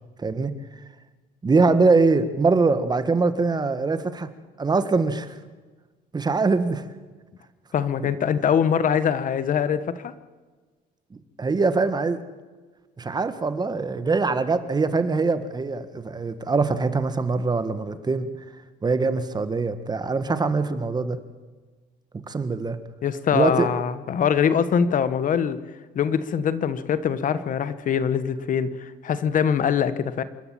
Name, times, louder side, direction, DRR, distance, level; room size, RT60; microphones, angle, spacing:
voice 1, 0.2-0.5 1.4-4.3 4.6-5.3 6.1-6.8 11.4-12.2 13.0-18.3 18.8-21.2 22.3-22.8 23.3-23.7, right 4 dB, 25° right, 11 dB, 1.6 m, -23 dB
voice 2, 7.7-10.1 23.0-25.6 25.9-30.2, left 7 dB, 50° left, 13 dB, 1.4 m, -23 dB
28.0 x 13.0 x 7.6 m, 1.3 s
cardioid pair, 110°, 17 cm